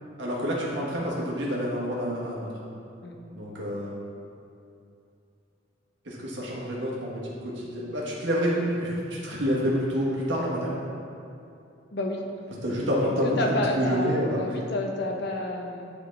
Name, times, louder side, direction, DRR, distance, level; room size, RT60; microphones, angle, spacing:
voice 1, 0.2-2.5 3.3-4.0 6.0-10.7 12.6-14.4, equal, 70° right, -5 dB, 1.5 m, -28 dB
voice 2, 11.9-12.2 13.0-15.9, left 1 dB, 60° left, 2 dB, 0.8 m, -30 dB
9.9 x 3.9 x 3.5 m, 2.6 s
head